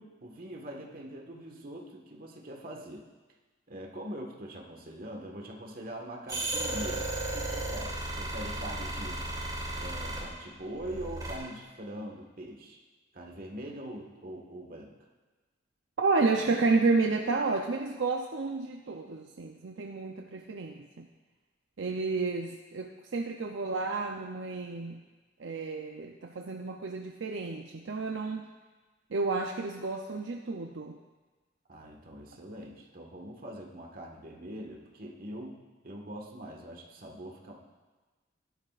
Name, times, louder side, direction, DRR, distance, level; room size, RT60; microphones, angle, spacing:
voice 1, 0.0-3.1 3.7-9.2 9.8-12.8 13.1-14.9 31.7-37.5, right 1 dB, 50° right, 0 dB, 1.6 m, -43 dB
sound 1, 6.3-10.3 10.7-11.3, right 2 dB, 20° right, 2.9 m, -34 dB
voice 2, 16.0-21.1 21.8-25.0 25.4-28.4 29.1-31.0, right 3 dB, 75° right, 2 dB, 0.6 m, -31 dB
17.5 x 11.5 x 2.5 m, 1.3 s
head